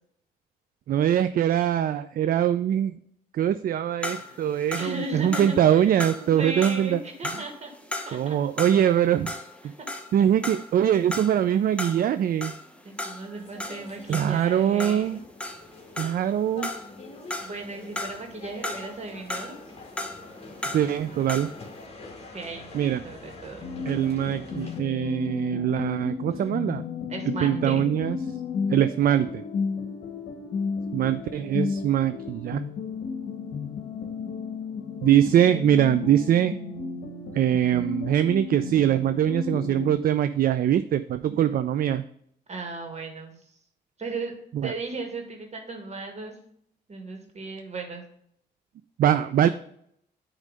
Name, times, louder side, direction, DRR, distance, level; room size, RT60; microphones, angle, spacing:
voice 1, 0.9-2.9 3.3-7.0 8.1-9.3 9.6-9.7 10.1-12.6 14.1-15.2 16.0-16.7 20.7-21.5 22.7-23.0 23.9-26.8 27.4-28.2 28.7-29.4 30.9-32.6 35.0-36.5 37.3-42.0 44.5-44.7 49.0-49.5, right 10 dB, 60° right, 12 dB, 0.4 m, -23 dB
sound 1, 4.0-9.0 9.3-16.3 16.6-18.3 18.6-21.6, left 1 dB, 5° left, 0.9 m, -36 dB
voice 2, 4.7-5.8 6.2-7.7 8.1-8.4 9.8-9.9 12.8-15.2 17.4-19.6 22.3-23.6 27.1-27.9 42.5-43.4 44.0-44.3 44.6-46.4 46.9-48.0, right 3 dB, 40° right, 3 dB, 2.0 m, -36 dB
sound 2, 13.4-24.8, left 3 dB, 35° left, 1.9 m, -45 dB
sound 3, 23.6-39.9, left 5 dB, 65° left, 1.2 m, -33 dB
9.7 x 3.2 x 5.1 m, 0.70 s
cardioid pair, 85°, 17 cm